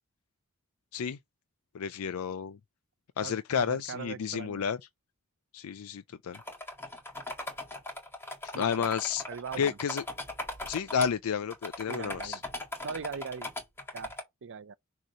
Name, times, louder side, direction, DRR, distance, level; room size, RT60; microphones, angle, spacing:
voice 1, 1.7-2.6 3.2-4.8 5.5-6.4 8.5-9.2 9.6-10.0 10.7-12.4, left 7 dB, 75° left, 0.4 m, -31 dB
voice 2, 3.2-4.7 8.5-8.9 9.3-9.8 11.9-12.4 12.8-13.5 13.9-14.1 14.4-14.7, right 5 dB, 60° right, 0.5 m, -40 dB
sound 1, 6.3-11.1 11.5-14.2, left 2 dB, 10° left, 1.9 m, -39 dB
6.3 x 3.1 x 5.5 m
head